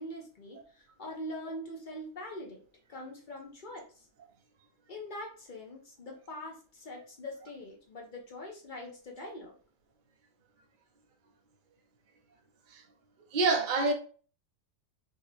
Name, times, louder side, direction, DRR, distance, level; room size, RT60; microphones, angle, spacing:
voice 1, 0.0-2.6 2.9-4.1 4.9-9.6, left 1 dB, 50° left, 0.6 m, -43 dB
voice 2, 13.3-13.9, right 3 dB, 55° right, 0.5 m, -26 dB
3.6 x 2.9 x 3.1 m
omnidirectional pair, 1.7 m